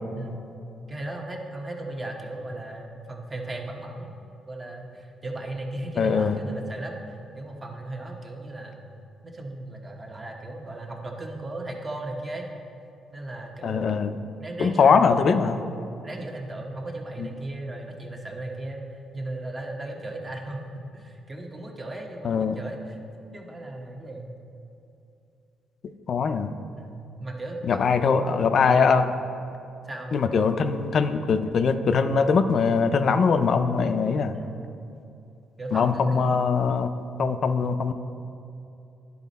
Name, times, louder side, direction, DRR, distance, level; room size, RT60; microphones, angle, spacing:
voice 1, 0.9-4.1 4.5-8.9 9.2-12.5 13.1-14.0 14.4-15.6 16.0-18.8 19.1-23.0 23.3-24.3 26.8-28.2 29.8-30.1 34.3-34.6 35.6-36.4, right 2 dB, 25° right, 1 dB, 1.0 m, -36 dB
voice 2, 6.0-6.4 13.6-14.1 14.6-15.6 17.2-17.3 22.2-22.6 26.1-26.5 27.7-29.1 30.1-34.4 35.7-36.9 37.2-37.9, left 5 dB, 55° left, 9 dB, 0.4 m, -22 dB
11.0 x 4.2 x 4.1 m, 2.7 s
cardioid pair, 90°, 0 cm